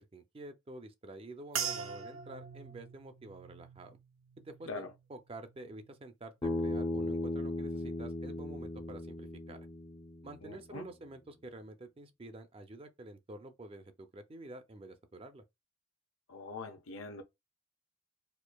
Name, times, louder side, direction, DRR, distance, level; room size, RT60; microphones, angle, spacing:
voice 1, 0.0-4.0 4.4-9.7 10.2-15.4, right 2 dB, 30° right, 0.4 m, -49 dB
sound 1, 1.5-6.1 6.4-7.0 7.6-7.9, right 7 dB, 90° right, 0.6 m, -43 dB
Bass guitar, 6.4-10.7, left 2 dB, 25° left, 0.6 m, -37 dB
voice 2, 10.4-10.9 16.3-17.2, left 3 dB, 90° left, 0.7 m, -43 dB
4.4 x 2.5 x 2.2 m
head